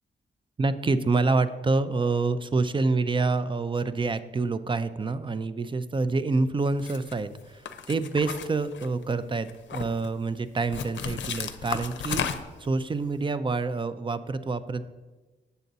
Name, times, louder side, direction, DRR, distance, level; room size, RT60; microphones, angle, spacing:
voice 1, 0.6-14.9, right 3 dB, 25° right, 13 dB, 0.4 m, -27 dB
sound 1, 6.8-7.1 7.7-9.1 9.5-10.1 10.7-12.7, left 7 dB, 80° left, 0.6 m, -33 dB
8.0 x 6.8 x 4.0 m, 1.2 s
cardioid pair, 85°, 19 cm